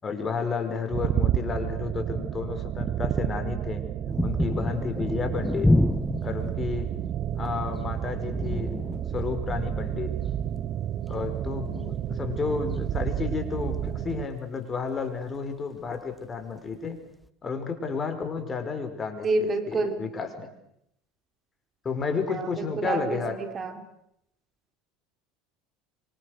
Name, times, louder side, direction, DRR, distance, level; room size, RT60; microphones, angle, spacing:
voice 1, 0.0-3.9 4.2-5.7 6.2-6.9 7.3-8.9 9.1-10.1 11.1-17.0 17.4-20.5 21.8-23.4, left 5 dB, 30° left, 7 dB, 5.4 m, -32 dB
sound 1, 0.9-14.3, right 11 dB, 50° right, 0.9 m, -31 dB
sound 2, 4.1-12.4 13.7-14.1 16.7-16.8 17.3-17.4, left 1 dB, 5° left, 1.0 m, -30 dB
voice 2, 19.2-20.1 22.3-23.7, right 3 dB, 35° right, 8 dB, 3.1 m, -28 dB
27.0 x 25.0 x 6.7 m, 0.77 s
hypercardioid pair, 85°, 0 cm